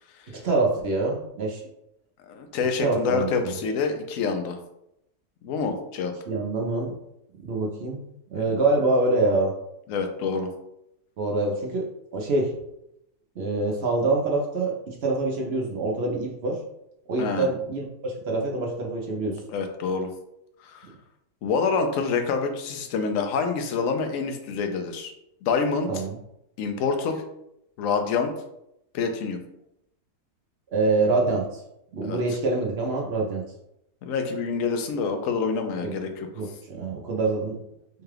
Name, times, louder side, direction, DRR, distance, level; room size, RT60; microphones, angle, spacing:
voice 1, 0.3-1.6 2.8-3.3 6.3-6.9 7.4-8.0 8.3-9.5 11.2-11.9 12.1-12.5 13.4-16.6 17.1-19.4 25.9-26.1 30.7-31.6 31.9-33.4 35.8-35.9 36.4-37.6, right 3 dB, 55° right, -1 dB, 0.7 m, -25 dB
voice 2, 2.3-4.6 5.4-6.1 8.3-8.5 9.9-10.5 17.2-17.5 19.5-20.1 20.6-20.9 21.4-25.1 25.4-26.0 26.6-27.2 27.8-28.3 28.9-29.4 32.0-32.4 34.0-36.3, left 5 dB, 65° left, 5 dB, 0.9 m, -27 dB
4.5 x 2.3 x 3.3 m, 0.81 s
omnidirectional pair, 1.7 m